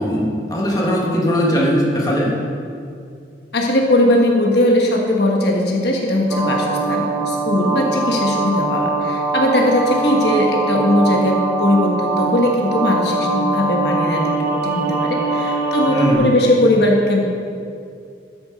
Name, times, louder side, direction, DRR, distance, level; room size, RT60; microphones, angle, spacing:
voice 1, 0.0-2.3 15.9-16.3, equal, 20° left, -3 dB, 1.8 m, -19 dB
voice 2, 3.5-17.2, left 1 dB, 65° left, 0 dB, 1.3 m, -19 dB
sound 1, 6.3-16.1, right 3 dB, 15° right, 1.2 m, -22 dB
13.0 x 7.0 x 5.1 m, 2.4 s
head